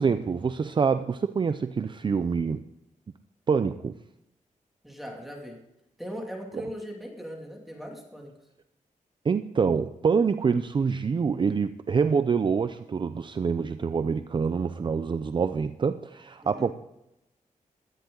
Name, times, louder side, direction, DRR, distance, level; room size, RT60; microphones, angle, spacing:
voice 1, 0.0-2.6 3.5-3.9 9.2-16.7, right 5 dB, 35° right, 10 dB, 0.5 m, -26 dB
voice 2, 4.8-5.6 6.0-8.3 16.4-16.7, equal, ahead, 0 dB, 2.6 m, -39 dB
17.5 x 13.0 x 3.9 m, 0.86 s
wide cardioid pair, 150°, 14 cm